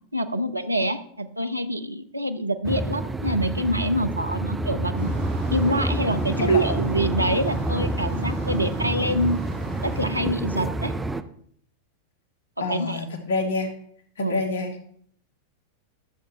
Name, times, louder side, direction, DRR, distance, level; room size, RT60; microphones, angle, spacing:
voice 1, 0.1-5.1 5.5-9.4 9.8-10.9 12.7-13.0 14.2-14.4, equal, 85° right, 9 dB, 0.5 m, -26 dB
sound 1, 2.6-11.2, right 2 dB, 10° right, 0.5 m, -28 dB
sound 2, 4.9-10.0, right 1 dB, 60° right, 3.9 m, -36 dB
voice 2, 12.6-13.7 14.2-14.7, left 3 dB, 60° left, 6 dB, 1.3 m, -27 dB
11.0 x 6.8 x 3.3 m, 0.64 s
figure-of-eight pair, 90°, 0 cm